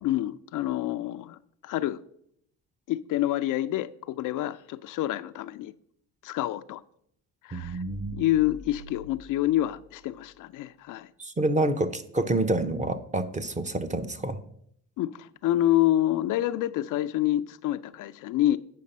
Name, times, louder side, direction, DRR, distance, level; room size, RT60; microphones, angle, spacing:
voice 1, 0.0-2.0 2.9-5.7 6.2-6.8 7.4-7.8 8.1-11.1 15.0-18.6, left 14 dB, 60° left, 0.5 m, -27 dB
voice 2, 7.5-8.1 11.2-14.4, right 2 dB, 20° right, 0.7 m, -28 dB
sound 1, 7.6-10.4, equal, 85° right, 3.3 m, -45 dB
8.5 x 5.3 x 5.3 m
supercardioid pair, 80°, 36 cm